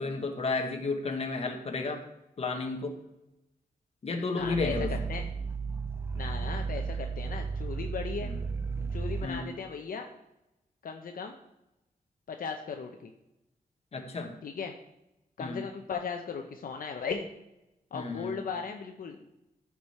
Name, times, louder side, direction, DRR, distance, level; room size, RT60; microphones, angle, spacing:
voice 1, 0.0-2.0 2.4-2.9 4.0-4.9 8.2-8.4 9.2-9.5 13.9-14.3 15.4-15.6 17.9-18.4, left 3 dB, 40° left, 4 dB, 1.2 m, -32 dB
voice 2, 4.4-5.2 6.1-8.3 8.9-10.1 10.8-11.3 12.3-13.1 14.4-14.7 15.4-17.3 17.9-19.2, left 5 dB, 65° left, 4 dB, 0.7 m, -37 dB
Growling, 4.4-9.4, right 5 dB, 15° right, 0.5 m, -34 dB
14.0 x 4.9 x 4.3 m, 0.92 s
wide cardioid pair, 165°, 15 cm